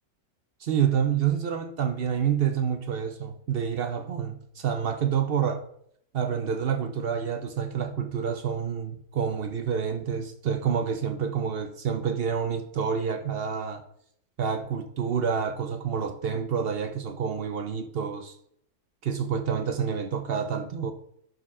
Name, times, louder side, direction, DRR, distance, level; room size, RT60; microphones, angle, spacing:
voice 1, 0.6-5.6 6.1-13.8 14.4-18.4 19.0-20.9, right 7 dB, 60° right, 0.6 m, -28 dB
11.5 x 4.3 x 3.7 m
omnidirectional pair, 1.6 m